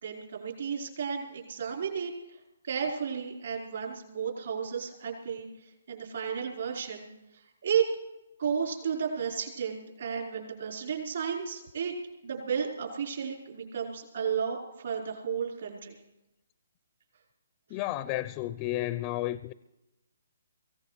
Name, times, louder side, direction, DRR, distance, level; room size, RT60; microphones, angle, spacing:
voice 1, 0.0-2.1 2.6-5.5 5.9-7.1 7.6-7.8 8.4-11.9 12.2-16.0, right 7 dB, 65° right, 4.6 m, -33 dB
voice 2, 17.7-19.5, left 16 dB, 30° left, 0.4 m, -32 dB
24.0 x 16.5 x 3.3 m
figure-of-eight pair, 140°, 0 cm